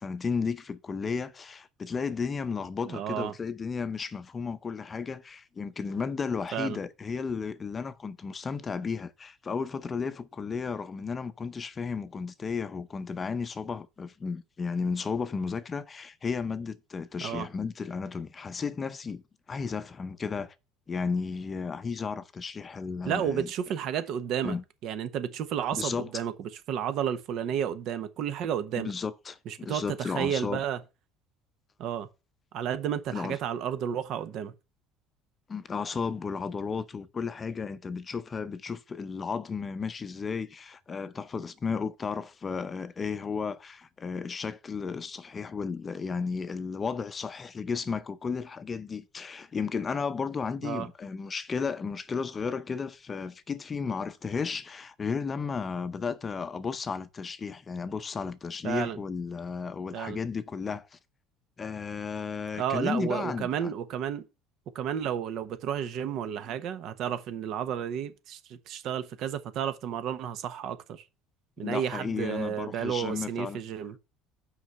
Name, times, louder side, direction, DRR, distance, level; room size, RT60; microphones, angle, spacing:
voice 1, 0.0-19.2 19.5-20.5 20.9-23.5 24.4-24.6 25.7-26.1 28.8-30.6 33.1-33.4 35.5-61.0 61.6-63.7 71.6-73.6, left 5 dB, 25° left, 0.6 m, -33 dB
voice 2, 2.9-3.3 6.5-6.8 17.2-17.5 23.0-24.6 24.8-28.9 29.5-30.8 31.8-32.1 32.5-34.5 50.6-50.9 58.6-59.0 59.9-60.2 62.6-64.2 64.7-71.0 71.6-74.0, right 9 dB, 60° right, 1.0 m, -32 dB
6.1 x 4.8 x 6.5 m
supercardioid pair, 110°, 0 cm